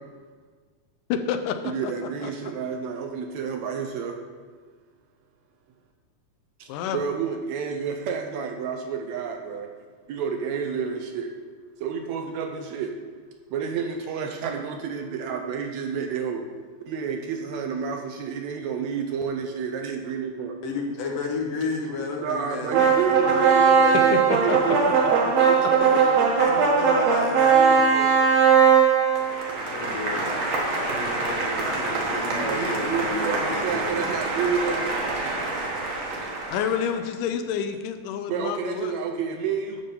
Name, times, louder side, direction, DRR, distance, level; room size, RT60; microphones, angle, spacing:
voice 1, 1.1-1.9 2.2-2.3 6.7-7.0 24.1-24.9 36.5-38.9, left 8 dB, 90° left, 7 dB, 2.2 m, -28 dB
voice 2, 1.6-4.2 6.6-9.7 10.1-11.3 11.8-12.9 13.5-16.5 16.8-20.6 22.2-26.4 27.3-28.2 32.2-34.9 38.3-39.8, right 6 dB, 75° right, 4 dB, 1.7 m, -30 dB
voice 3, 20.6-23.3 25.8-26.1 26.4-27.6 29.7-34.1, left 3 dB, 60° left, 1 dB, 1.9 m, -32 dB
sound 1, 22.7-36.9, right 5 dB, 60° right, 2.2 m, -21 dB
10.5 x 3.7 x 6.7 m, 1.5 s
omnidirectional pair, 3.6 m